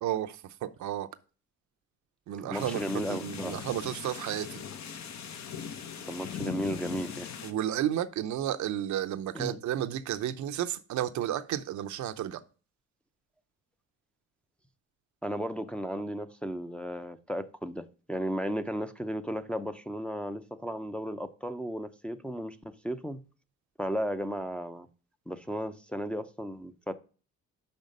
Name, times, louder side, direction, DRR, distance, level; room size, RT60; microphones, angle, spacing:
voice 1, 0.0-1.1 2.3-2.8 3.1-4.6 7.4-12.4, right 11 dB, 70° right, 0.6 m, -32 dB
voice 2, 2.4-3.6 6.0-7.3 9.3-9.6 15.2-17.8 18.1-23.2 23.8-24.9 25.3-26.9, equal, 5° left, 0.5 m, -34 dB
sound 1, 2.5-7.5, left 8 dB, 65° left, 0.9 m, -40 dB
5.6 x 5.3 x 5.2 m
cardioid pair, 90°, 30 cm